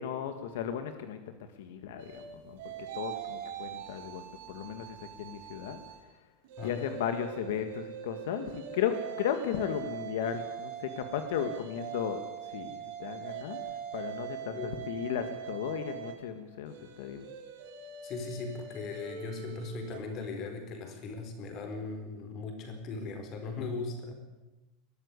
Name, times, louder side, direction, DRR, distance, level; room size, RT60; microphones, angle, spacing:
voice 1, 0.0-6.3 6.6-17.3, left 9 dB, 75° left, 8 dB, 1.7 m, -36 dB
sound 1, 2.0-6.0 6.4-20.0, right 8 dB, 65° right, 4.4 m, -42 dB
voice 2, 18.0-24.1, left 4 dB, 35° left, 5 dB, 4.3 m, -38 dB
21.5 x 13.5 x 9.7 m, 1.1 s
supercardioid pair, 170°, 0 cm